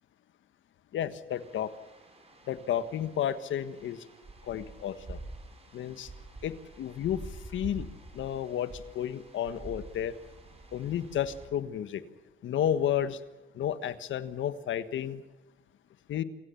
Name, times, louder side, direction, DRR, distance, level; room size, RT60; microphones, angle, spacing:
voice 1, 0.9-1.7 2.5-4.0 4.5-5.2 5.7-6.1 6.4-7.2 7.5-7.9 8.1-10.1 10.7-12.0 12.4-13.2 13.6-15.2 16.1-16.2, left 10 dB, 75° left, 12 dB, 1.5 m, -32 dB
sound 1, 1.3-11.5, right 2 dB, 30° right, 6.2 m, -47 dB
27.0 x 17.0 x 7.2 m, 1.1 s
cardioid pair, 90°, 20 cm